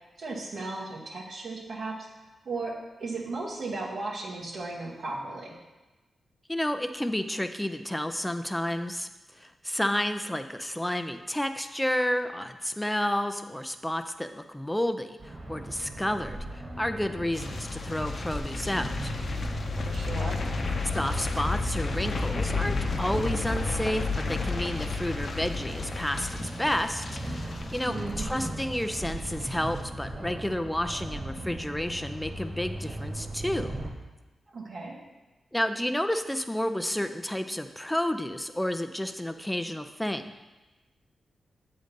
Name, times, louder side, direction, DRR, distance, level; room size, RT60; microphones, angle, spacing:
voice 1, 0.2-2.1 2.4-5.6 19.8-20.5 27.9-28.2 34.5-35.0, right 3 dB, 65° right, -3 dB, 1.2 m, -36 dB
voice 2, 6.5-9.1 9.4-19.1 20.9-33.7 35.5-40.3, left 1 dB, 10° left, 8 dB, 0.5 m, -31 dB
sound 1, 15.2-33.9, right 1 dB, 45° right, 1.8 m, -38 dB
sound 2, 17.3-28.5 28.7-29.1 29.4-29.5, left 3 dB, 55° left, 0.7 m, -32 dB
7.9 x 3.9 x 5.2 m, 1.1 s
cardioid pair, 60°, 0 cm